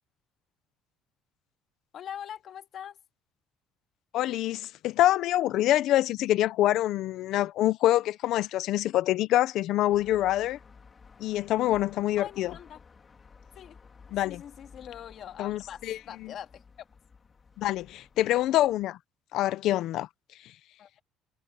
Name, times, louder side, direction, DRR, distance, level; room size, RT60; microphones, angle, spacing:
voice 1, 1.9-3.0 12.2-12.8 13.5-13.8 14.2-16.9 20.8-21.0, left 9 dB, 45° left, 2.5 m, -43 dB
voice 2, 4.1-10.6 11.2-12.5 14.1-14.4 15.4-16.0 17.6-19.0 19.3-20.1, left 14 dB, 60° left, 0.8 m, -25 dB
sound 1, 9.9-18.8, left 5 dB, 25° left, 3.7 m, -54 dB
cardioid pair, 140°, 0 cm